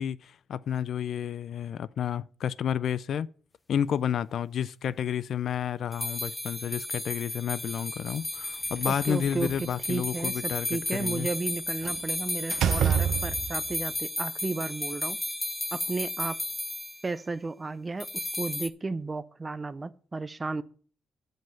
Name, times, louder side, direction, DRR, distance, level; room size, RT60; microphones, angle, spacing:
voice 1, 0.0-3.3 3.7-11.3, left 9 dB, 70° left, 0.3 m, -31 dB
sound 1, 5.9-17.0 18.0-18.7, left 2 dB, 15° left, 0.7 m, -34 dB
Slam, 8.7-9.7 11.8-12.1 12.5-13.7, right 9 dB, 75° right, 0.5 m, -28 dB
voice 2, 8.8-15.2 15.7-16.4 17.0-20.6, right 3 dB, 25° right, 0.5 m, -33 dB
7.6 x 5.2 x 6.9 m
cardioid pair, 110°, 0 cm